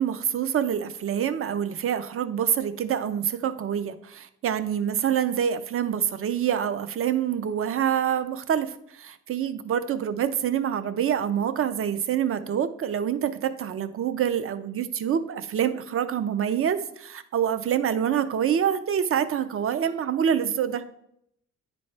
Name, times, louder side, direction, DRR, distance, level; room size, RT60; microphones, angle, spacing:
voice 1, 0.0-20.8, right 9 dB, 45° right, 11 dB, 0.6 m, -26 dB
9.6 x 4.2 x 3.3 m, 0.73 s
cardioid pair, 90°, 30 cm